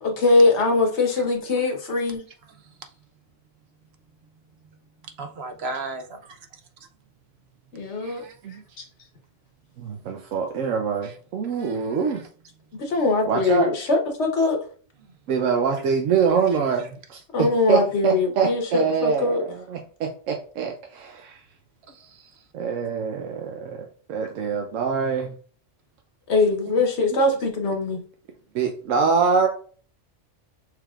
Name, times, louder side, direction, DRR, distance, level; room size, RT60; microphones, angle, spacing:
voice 1, 0.0-2.2 7.7-8.2 12.8-14.6 17.3-19.5 26.3-28.0, left 3 dB, 65° left, 1.4 m, -22 dB
voice 2, 5.2-6.0 8.0-8.4 11.0-11.1 11.5-12.0 21.9-22.3, right 3 dB, 60° right, 0.9 m, -36 dB
voice 3, 9.8-12.2 13.3-13.7 15.3-21.4 22.5-25.3 28.5-29.5, right 6 dB, 85° right, 1.0 m, -24 dB
6.3 x 3.4 x 2.4 m
omnidirectional pair, 1.3 m